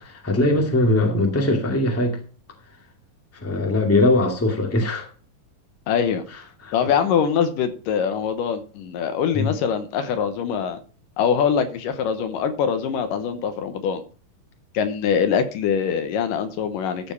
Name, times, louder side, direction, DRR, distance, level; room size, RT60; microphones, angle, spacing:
voice 1, 0.0-2.2 3.4-5.1 6.6-6.7 9.3-9.5, left 2 dB, 5° left, 1 dB, 1.5 m, -21 dB
voice 2, 5.9-6.2 6.7-10.8 11.2-14.0 14.7-17.1, left 7 dB, 75° left, 9 dB, 2.5 m, -23 dB
13.5 x 5.2 x 5.8 m, 0.37 s
omnidirectional pair, 4.1 m